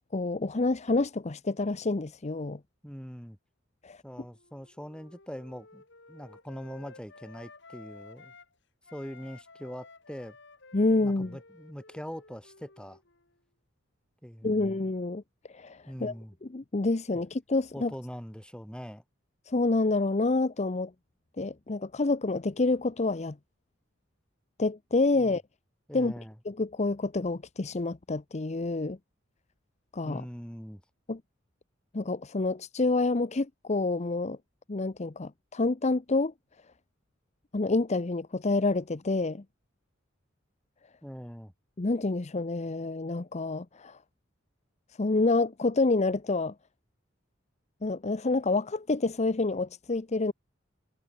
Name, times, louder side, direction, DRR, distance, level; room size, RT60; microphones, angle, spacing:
voice 1, 0.1-2.6 3.8-4.0 10.7-11.4 14.4-15.2 15.5-16.1 16.4-17.9 19.5-20.9 21.4-23.4 24.6-25.4 25.9-26.1 26.4-29.0 29.9-30.2 31.1-31.2 31.9-34.4 34.7-36.3 37.5-39.4 41.8-44.0 45.0-46.5 47.8-50.3, left 3 dB, 35° left, 0.7 m, -28 dB
voice 2, 2.8-3.4 4.0-5.8 6.1-8.4 8.9-10.4 11.0-13.0 14.2-14.8 15.9-16.4 17.7-19.0 25.1-25.4 25.9-26.3 30.0-30.8 41.0-41.5, equal, 5° left, 5.4 m, -42 dB
Wind instrument woodwind instrument, 4.1-8.5 8.8-13.4, left 3 dB, 65° left, 5.1 m, -54 dB
head